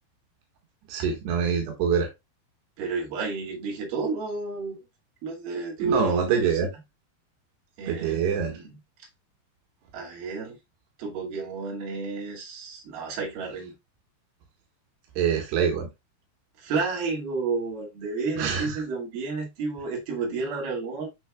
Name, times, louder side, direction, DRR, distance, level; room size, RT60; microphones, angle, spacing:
voice 1, 0.9-2.1 5.8-6.7 7.9-8.6 15.2-15.9 18.4-18.7, right 6 dB, 90° right, 3.8 m, -25 dB
voice 2, 2.8-4.8 5.2-6.7 7.8-8.8 9.9-10.6 11.0-13.7 16.6-21.1, right 4 dB, 70° right, 4.2 m, -31 dB
11.5 x 4.6 x 2.4 m
omnidirectional pair, 4.6 m